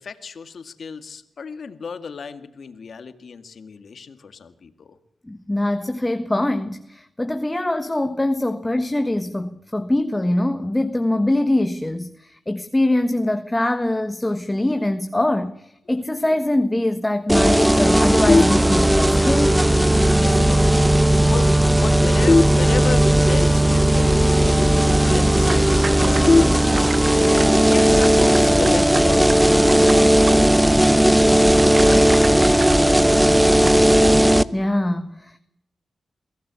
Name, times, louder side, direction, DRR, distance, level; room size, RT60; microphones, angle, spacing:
voice 1, 0.0-5.0 20.1-27.0 27.6-32.8, left 5 dB, 70° left, 2.0 m, -34 dB
voice 2, 5.3-19.6 34.5-35.4, left 1 dB, 15° left, 1.4 m, -23 dB
sound 1, 17.3-34.4, right 1 dB, 5° right, 0.9 m, -16 dB
sound 2, 18.3-19.2 22.3-23.3 26.3-27.3, left 3 dB, 40° left, 0.7 m, -20 dB
sound 3, 25.1-33.8, right 4 dB, 50° right, 1.1 m, -36 dB
23.5 x 16.0 x 8.4 m
cardioid pair, 65°, 0 cm